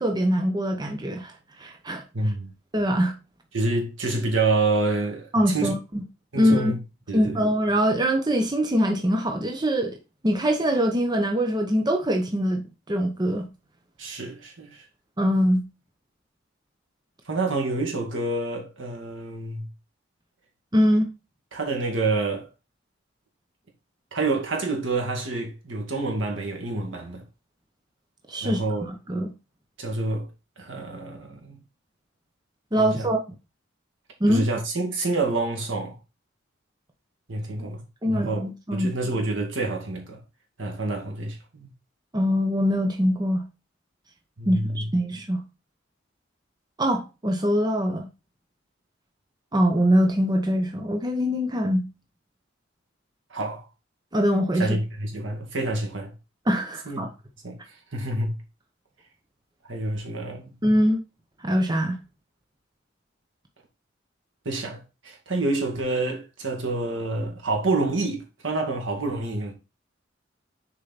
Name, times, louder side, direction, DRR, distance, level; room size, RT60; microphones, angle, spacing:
voice 1, 0.0-2.0 2.7-3.1 5.3-6.0 6.3-6.7 7.1-10.0 10.2-13.5 15.2-15.6 20.7-21.1 28.3-28.6 28.9-29.3 32.7-33.2 34.2-34.4 38.0-38.9 42.1-43.4 44.5-45.4 46.8-48.1 49.5-51.9 54.1-54.8 56.5-57.1 60.6-61.0 61.4-62.0, equal, 20° right, 0.8 m, -23 dB
voice 2, 2.1-2.5 3.5-5.7 6.3-6.8 7.1-7.4 14.0-14.8 17.3-19.7 21.5-22.5 24.1-27.2 28.4-28.9 29.8-30.3 30.6-31.6 32.8-33.1 34.3-36.0 37.3-40.2 40.6-41.7 44.4-44.9 53.3-53.7 54.6-56.1 56.9-57.0 57.4-58.4 59.7-60.5 64.5-69.5, right 2 dB, 75° right, 2.2 m, -28 dB
6.6 x 4.6 x 4.1 m
head